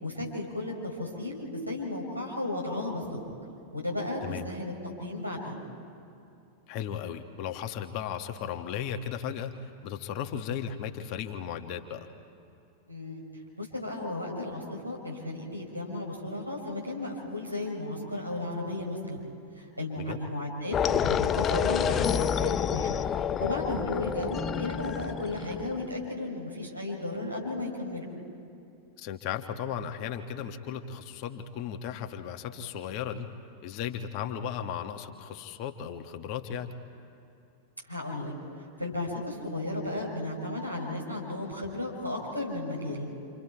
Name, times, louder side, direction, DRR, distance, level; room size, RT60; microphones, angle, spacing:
voice 1, 0.0-3.2 3.7-4.7 5.0-5.6 12.9-13.2 13.5-19.3 19.6-22.9 23.4-28.1 37.9-38.3 38.8-43.1, left 2 dB, 90° right, -3 dB, 4.4 m, -34 dB
voice 2, 6.7-12.1 20.0-20.2 29.0-33.3 33.6-36.7, left 8 dB, 45° left, 5 dB, 1.3 m, -36 dB
sound 1, 20.7-25.9, left 8 dB, 25° left, 0.5 m, -28 dB
28.5 x 27.0 x 4.6 m, 2.7 s
figure-of-eight pair, 90°, 0 cm